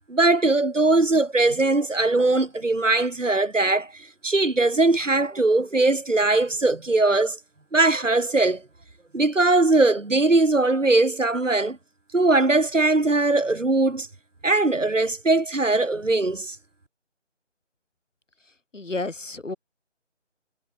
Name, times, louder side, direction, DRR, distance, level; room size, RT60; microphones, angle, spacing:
voice 1, 0.1-3.9 4.2-7.4 7.7-8.6 9.1-11.8 12.1-14.1 14.4-16.6, right 2 dB, 85° right, 3.8 m, -20 dB
voice 2, 18.7-19.6, left 3 dB, 80° left, 3.2 m, -31 dB
figure-of-eight pair, 170°, 37 cm